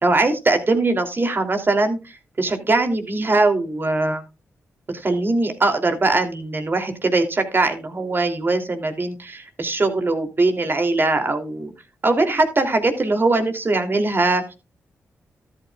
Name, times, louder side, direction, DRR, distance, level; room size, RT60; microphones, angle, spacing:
voice 1, 0.0-4.2 4.9-11.7 12.0-14.5, right 2 dB, 40° right, 6 dB, 2.9 m, -21 dB
13.0 x 12.5 x 2.4 m, 0.27 s
cardioid pair, 60°, 6 cm